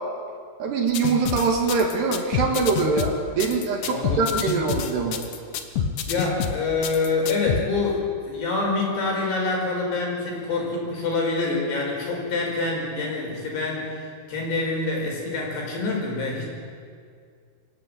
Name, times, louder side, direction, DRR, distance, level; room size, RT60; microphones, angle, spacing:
voice 1, 0.6-5.2, right 4 dB, 60° right, 1 dB, 3.7 m, -23 dB
sound 1, 0.9-7.6, left 7 dB, 80° left, 1.9 m, -28 dB
voice 2, 3.9-4.4 6.1-16.5, left 3 dB, 55° left, -1 dB, 7.0 m, -26 dB
26.0 x 16.0 x 8.9 m, 2.2 s
omnidirectional pair, 5.9 m